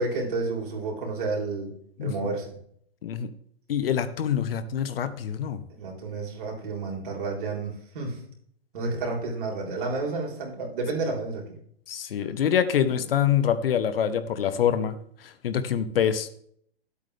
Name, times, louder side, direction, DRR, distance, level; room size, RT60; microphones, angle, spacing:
voice 1, 0.0-1.7 2.0-2.6 5.8-8.2 8.7-11.6 12.2-12.4 12.9-13.0, right 3 dB, 55° right, 0 dB, 4.0 m, -31 dB
voice 2, 3.7-5.6 11.9-14.9 15.2-16.3, left 9 dB, 65° left, 12 dB, 1.1 m, -25 dB
11.5 x 8.3 x 3.4 m, 0.65 s
hypercardioid pair, 150°, 31 cm